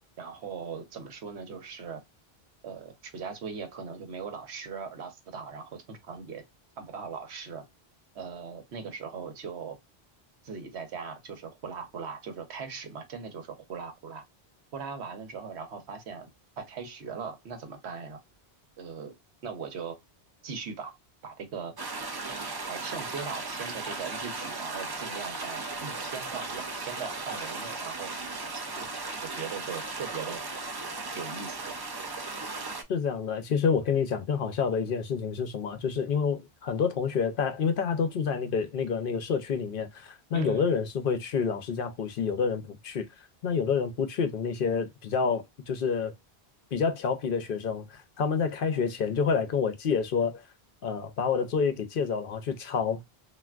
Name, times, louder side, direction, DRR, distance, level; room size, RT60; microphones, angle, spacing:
voice 1, 0.2-2.0 2.6-6.4 6.8-7.6 8.1-9.8 10.4-14.2 14.7-16.3 16.6-18.2 18.8-19.1 19.4-20.0 20.4-20.9 21.2-21.7 22.7-28.1 28.5-28.9 29.2-30.4 31.1-31.7 40.3-40.7, right 5 dB, 85° right, 1.1 m, -39 dB
sound 1, 21.8-32.8, right 3 dB, 40° right, 0.3 m, -36 dB
voice 2, 32.9-43.1 43.4-46.1 46.7-50.4 50.8-53.0, left 6 dB, 60° left, 0.7 m, -28 dB
3.3 x 2.5 x 2.3 m
omnidirectional pair, 1.1 m